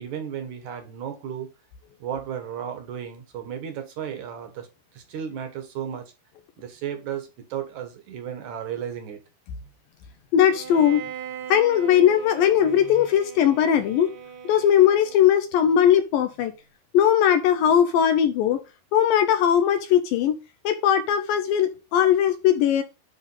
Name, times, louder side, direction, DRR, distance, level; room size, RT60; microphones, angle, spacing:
voice 1, 0.0-1.5 2.0-4.7 4.9-6.1 6.6-9.2, right 9 dB, 60° right, 2.2 m, -34 dB
voice 2, 10.3-11.0 11.5-14.1 14.4-16.5 16.9-18.6 18.9-20.4 20.6-22.8, left 9 dB, 75° left, 2.2 m, -19 dB
Bowed string instrument, 10.4-15.5, right 9 dB, 80° right, 3.9 m, -40 dB
9.9 x 3.5 x 5.5 m
omnidirectional pair, 4.7 m